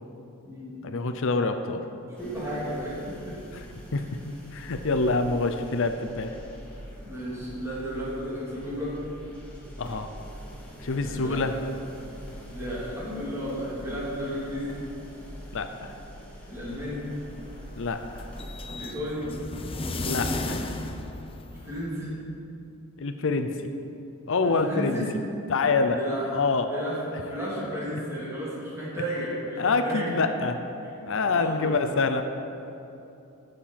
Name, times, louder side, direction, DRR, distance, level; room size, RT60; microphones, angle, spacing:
voice 1, 0.8-1.8 3.9-4.0 4.5-6.3 9.8-10.1 10.8-11.5 15.5-15.9 17.8-18.3 20.0-20.6 23.0-23.5 24.3-25.0 25.5-26.0 26.3-26.7 29.6-30.6 31.0-32.2, left 3 dB, 65° left, 7 dB, 0.7 m, -26 dB
voice 2, 2.1-3.3 7.0-8.9 11.0-11.4 12.5-14.8 16.5-17.0 18.7-19.2 21.5-22.1 24.4-25.1 25.9-30.2 31.3-31.8, equal, 15° right, -8 dB, 3.2 m, -33 dB
sound 1, 2.2-18.6, equal, 5° left, 2.5 m, -44 dB
Elevator opening, 16.9-22.0, left 2 dB, 25° left, 0.7 m, -34 dB
15.5 x 6.7 x 5.8 m, 2.8 s
head